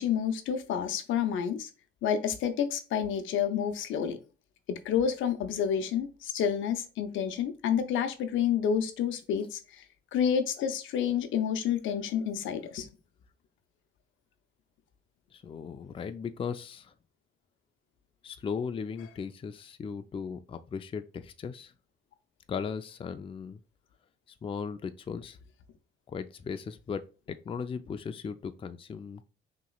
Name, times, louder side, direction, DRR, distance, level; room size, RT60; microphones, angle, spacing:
voice 1, 0.0-1.7 2.0-4.2 4.7-9.8 10.1-12.9, left 8 dB, 80° left, 0.6 m, -29 dB
voice 2, 15.3-16.9 18.2-21.7 22.5-23.6 24.4-25.4 26.1-29.2, left 6 dB, 25° left, 0.4 m, -37 dB
5.6 x 3.0 x 2.3 m
cardioid pair, 90°, 20 cm